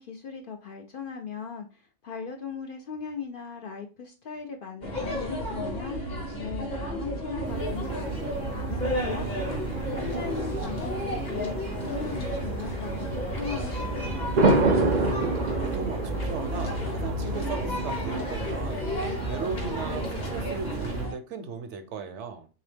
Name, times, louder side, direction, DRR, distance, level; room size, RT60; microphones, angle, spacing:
voice 1, 0.0-9.3 10.0-14.5, left 6 dB, 60° left, 0.6 m, -39 dB
sound 1, 4.8-21.1, equal, 40° left, 1.1 m, -33 dB
sound 2, 7.4-21.1, right 2 dB, 55° right, 0.5 m, -30 dB
voice 2, 15.6-18.9 19.3-22.5, right 5 dB, 70° right, 0.9 m, -37 dB
3.7 x 2.8 x 3.3 m
omnidirectional pair, 1.3 m